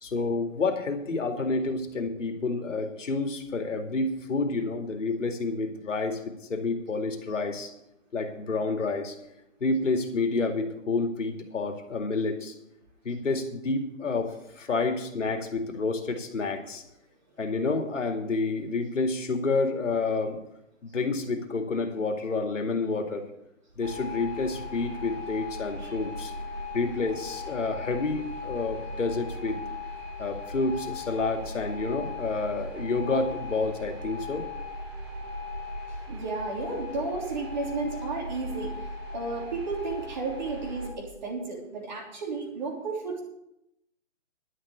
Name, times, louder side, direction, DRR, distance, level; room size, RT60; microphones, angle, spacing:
voice 1, 0.0-6.2 6.5-7.7 8.1-9.2 9.6-12.5 13.0-16.8 17.4-20.4 20.8-23.2 23.8-26.3 26.7-29.6 30.2-34.5, left 3 dB, 70° left, 4 dB, 2.4 m, -29 dB
sound 1, 23.8-40.9, left 2 dB, 20° right, 1.7 m, -38 dB
voice 2, 36.1-38.7 39.1-43.2, right 3 dB, 35° right, 0 dB, 3.2 m, -33 dB
11.0 x 6.7 x 8.6 m, 0.84 s
hypercardioid pair, 175°, 39 cm